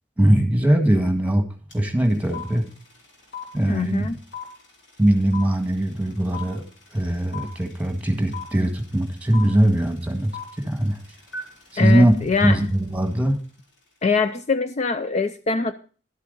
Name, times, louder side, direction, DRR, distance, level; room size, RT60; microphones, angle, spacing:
voice 1, 0.2-1.4 1.7-2.6 3.5-4.1 5.0-6.6 6.9-10.3 10.6-11.0 11.7-12.1 12.4-13.4, right 1 dB, 10° right, 6 dB, 1.7 m, -20 dB
sound 1, 1.7-1.8 2.0-13.2, left 5 dB, 80° left, 3.0 m, -39 dB
voice 2, 3.7-4.2 11.8-12.7 14.0-15.7, left 4 dB, 40° left, 10 dB, 0.5 m, -23 dB
11.5 x 8.3 x 5.2 m, 0.40 s
head